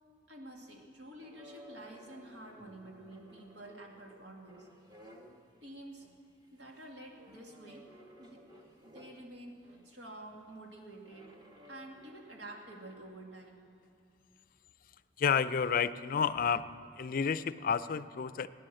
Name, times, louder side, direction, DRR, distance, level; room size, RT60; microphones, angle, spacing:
voice 1, 0.3-4.7 5.6-6.1 6.5-7.9 8.2-8.4 8.8-9.6 9.8-11.4 11.7-13.7 16.4-16.5, right 1 dB, 85° right, 0 dB, 2.3 m, -49 dB
sound 1, 1.2-5.6 6.0-6.4 7.1-10.0 11.0-13.0, equal, 25° right, 1.3 m, -57 dB
voice 2, 15.2-16.6 17.0-18.5, left 6 dB, 50° left, 15 dB, 0.4 m, -30 dB
17.0 x 10.0 x 7.7 m, 2.4 s
head